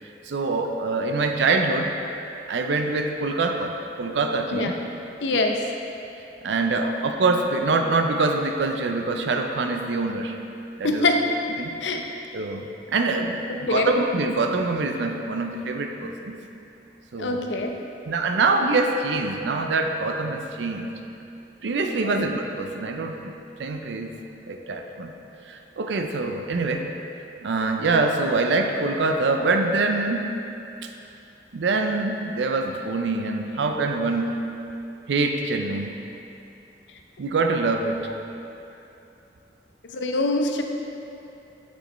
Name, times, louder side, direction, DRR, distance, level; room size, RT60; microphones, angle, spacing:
voice 1, 0.2-2.0 2.5-4.7 5.3-5.4 6.4-10.3 10.8-11.1 11.6-11.7 12.3-16.4 17.1-17.4 18.1-20.9 21.6-23.3 23.6-24.1 24.5-25.1 25.5-26.9 27.4-30.4 31.5-34.4 35.1-35.9 37.2-38.1, right 3 dB, 75° right, 4 dB, 0.5 m, -24 dB
voice 2, 5.2-5.6 10.8-11.2 11.8-12.0 13.5-13.9 17.2-17.7 22.0-22.3 39.8-40.6, left 2 dB, 85° left, 3 dB, 0.6 m, -24 dB
8.4 x 6.2 x 3.1 m, 2.7 s
head